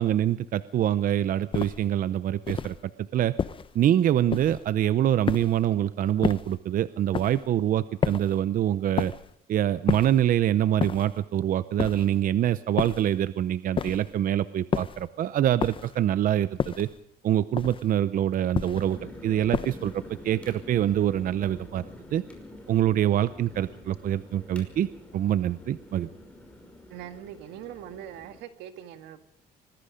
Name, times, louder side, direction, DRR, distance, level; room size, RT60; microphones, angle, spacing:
voice 1, 0.0-2.7 3.1-3.3 3.7-9.1 9.5-16.9 17.2-21.8 22.1-22.2 22.7-24.9 25.1-26.1, right 11 dB, 55° right, 14 dB, 0.7 m, -25 dB
sound 1, 1.5-1.9 2.5-2.8 3.4-3.8 4.3-4.7 5.3-5.7 6.2-6.6 7.1-7.5 8.0-8.4 9.0-9.3 9.9-10.3 10.8-11.2 11.8-12.2 12.8-13.2 13.8-14.2 14.7-15.1 15.6-16.0 16.6-17.0 17.6-18.0 18.5-19.0 19.5-20.0, left 6 dB, 30° left, 0.8 m, -31 dB
sound 2, 18.8-28.4, left 1 dB, 5° left, 5.6 m, -46 dB
voice 2, 26.9-29.3, right 10 dB, 90° right, 8 dB, 2.0 m, -42 dB
25.5 x 20.0 x 5.2 m, 0.70 s
cardioid pair, 110°, 17 cm